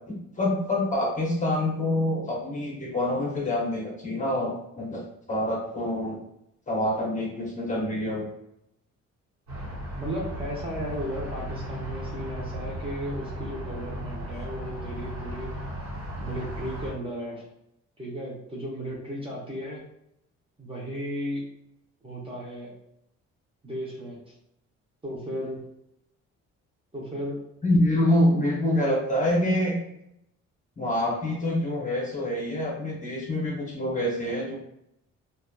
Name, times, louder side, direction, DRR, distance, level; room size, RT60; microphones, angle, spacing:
voice 1, 0.1-5.0 5.3-6.2 6.7-8.3 27.6-29.8 30.8-34.5, left 1 dB, 25° left, -3 dB, 0.8 m, -26 dB
sound 1, 9.5-16.9, equal, 65° right, 1.1 m, -36 dB
voice 2, 10.0-15.5 16.2-17.4 18.0-19.8 20.6-21.4 22.0-22.7 23.6-24.3 25.0-25.7 26.9-27.4, equal, 20° right, -4 dB, 0.8 m, -35 dB
2.7 x 2.3 x 2.3 m, 0.80 s
cardioid pair, 90°, 30 cm